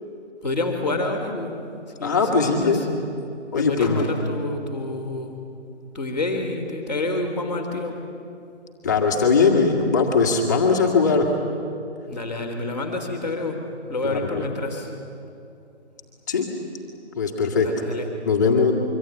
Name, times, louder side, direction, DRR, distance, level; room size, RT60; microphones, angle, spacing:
voice 1, 0.4-1.5 2.0-2.9 3.5-5.4 5.9-8.0 12.1-13.6 13.9-15.0 17.6-18.1, left 2 dB, ahead, -7 dB, 1.9 m, -28 dB
voice 2, 2.0-2.8 3.5-4.0 8.8-11.3 14.0-14.4 16.3-16.5 17.1-17.7 18.3-18.7, left 5 dB, 15° left, 0 dB, 1.7 m, -20 dB
25.0 x 24.0 x 9.1 m, 2.6 s
figure-of-eight pair, 170°, 35 cm